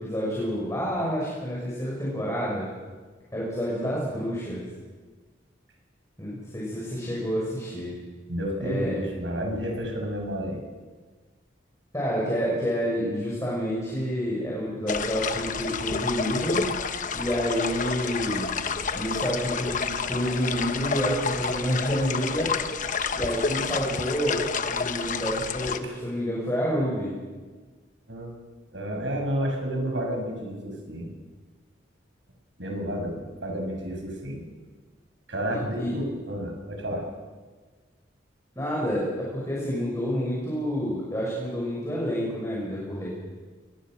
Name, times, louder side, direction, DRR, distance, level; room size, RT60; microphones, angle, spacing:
voice 1, 0.0-2.7 3.3-4.6 6.2-7.9 8.6-9.0 11.9-16.7 17.1-18.5 18.9-22.5 23.1-27.2 35.7-35.9 38.6-43.1, equal, 15° left, -5 dB, 6.4 m, -28 dB
voice 2, 8.3-10.6 25.6-26.0 28.1-28.4 28.7-31.1 32.6-34.4 35.3-37.1, equal, 80° right, 2 dB, 6.8 m, -31 dB
sound 1, 14.9-25.8, left 5 dB, 45° left, 1.1 m, -29 dB
24.5 x 22.5 x 6.5 m, 1.4 s
head